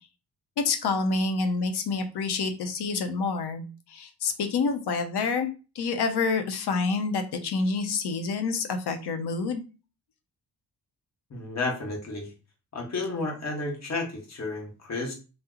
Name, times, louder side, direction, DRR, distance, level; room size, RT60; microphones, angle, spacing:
voice 1, 0.6-9.6, left 4 dB, 80° left, 7 dB, 0.7 m, -28 dB
voice 2, 11.3-12.3 12.7-15.1, left 3 dB, 45° left, 0 dB, 1.0 m, -32 dB
2.8 x 2.0 x 3.6 m, 0.32 s
wide cardioid pair, 140°, 39 cm